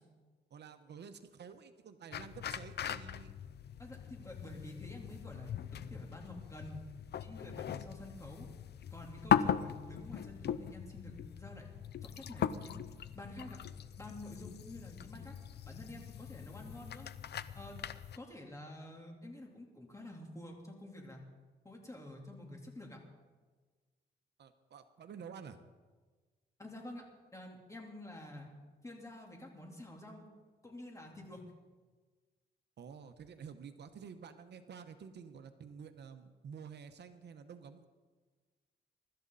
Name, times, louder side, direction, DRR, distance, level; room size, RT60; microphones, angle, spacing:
voice 1, 0.5-3.3 16.6-16.7 24.4-25.6 32.8-37.9, right 6 dB, 70° right, 8 dB, 1.1 m, -50 dB
sound 1, 2.1-18.2, left 9 dB, 65° left, 0.6 m, -39 dB
voice 2, 3.8-6.8 7.2-8.5 8.9-11.7 12.0-12.8 13.1-13.6 14.0-15.3 15.6-17.1 17.5-17.8 18.2-21.2 21.6-23.0 26.6-28.5 28.8-30.3 30.6-31.4, left 1 dB, 15° left, 0 dB, 3.5 m, -49 dB
23.5 x 12.5 x 4.1 m, 1.4 s
cardioid pair, 95°, 18 cm